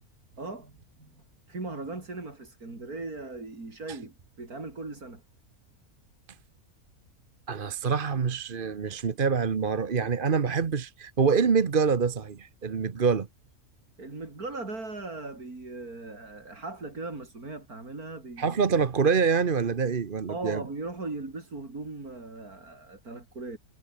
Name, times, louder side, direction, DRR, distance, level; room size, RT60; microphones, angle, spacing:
voice 1, 0.4-1.1 1.5-5.2 14.0-18.6 20.3-23.6, right 3 dB, 75° right, 5.1 m, -38 dB
voice 2, 7.5-13.3 18.4-20.6, right 5 dB, 40° right, 1.1 m, -25 dB
omnidirectional pair, 1.6 m